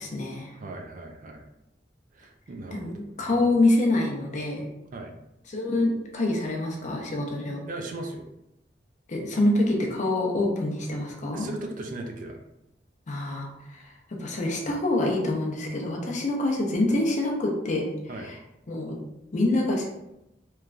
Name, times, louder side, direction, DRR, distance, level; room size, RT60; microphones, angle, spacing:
voice 1, 0.0-0.5 2.7-4.6 5.5-7.6 9.1-11.5 13.1-18.4 18.7-19.0 19.3-19.8, left 2 dB, 45° left, 0 dB, 0.5 m, -26 dB
voice 2, 0.5-1.4 2.1-2.9 3.3-3.6 4.9-5.1 7.7-8.3 11.3-12.4 18.1-18.3, right 2 dB, 50° right, 3 dB, 0.3 m, -38 dB
3.1 x 2.2 x 2.4 m, 0.89 s
head